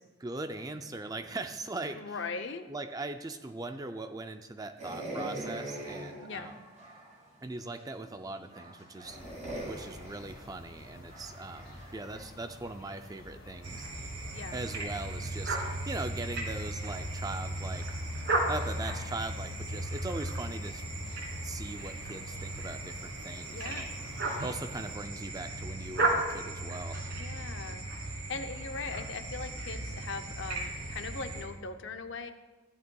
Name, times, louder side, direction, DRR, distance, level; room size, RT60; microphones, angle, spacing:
voice 1, 0.2-2.2 2.7-6.5 7.4-9.2 9.7-13.9 14.5-17.9 18.5-20.8 21.4-23.9 24.4-27.0, right 2 dB, 15° right, 8 dB, 0.3 m, -40 dB
voice 2, 2.0-2.7 6.1-6.5 14.3-14.6 23.5-23.9 27.2-27.8 28.3-32.3, left 4 dB, 55° left, 8 dB, 0.6 m, -40 dB
sound 1, 4.8-7.2 7.8-7.9 8.5-12.3, right 1 dB, 35° right, 2.2 m, -42 dB
sound 2, 9.0-25.0, left 1 dB, 80° left, 1.7 m, -50 dB
sound 3, 13.6-31.4, right 2 dB, 55° right, 1.7 m, -35 dB
15.5 x 10.5 x 2.3 m, 1.3 s
head